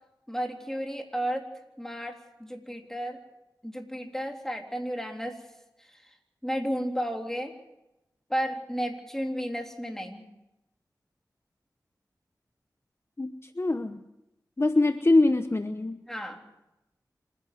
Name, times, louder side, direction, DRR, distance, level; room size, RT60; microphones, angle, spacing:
voice 1, 0.3-1.5 1.8-3.2 3.6-5.5 5.8-6.2 6.4-7.6 8.3-10.2 16.1-16.4, equal, 5° left, 3 dB, 3.5 m, -33 dB
voice 2, 13.2-14.0 14.6-16.0, left 2 dB, 35° left, 9 dB, 1.0 m, -24 dB
26.5 x 11.0 x 9.5 m, 0.93 s
cardioid pair, 45°, 7 cm